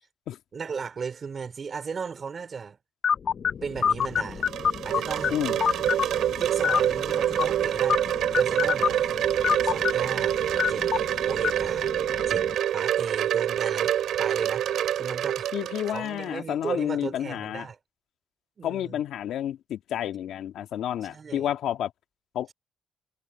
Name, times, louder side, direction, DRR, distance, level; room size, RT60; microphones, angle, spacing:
voice 1, 0.5-2.8 3.6-4.5 4.8-5.8 6.4-9.0 9.6-10.4 10.7-10.9 11.2-11.9 12.3-13.9 14.2-14.6 15.0-15.5 15.9-17.8 18.6-19.0 21.0-21.5, right 5 dB, 40° right, 3.3 m, -35 dB
sound 1, 3.0-12.5, left 7 dB, 50° left, 1.0 m, -29 dB
Wind chime, 4.0-16.3, right 11 dB, 75° right, 3.4 m, -26 dB
voice 2, 15.5-17.7 18.6-21.9 22.3-22.5, left 11 dB, 75° left, 2.0 m, -30 dB
cardioid pair, 90°, 0 cm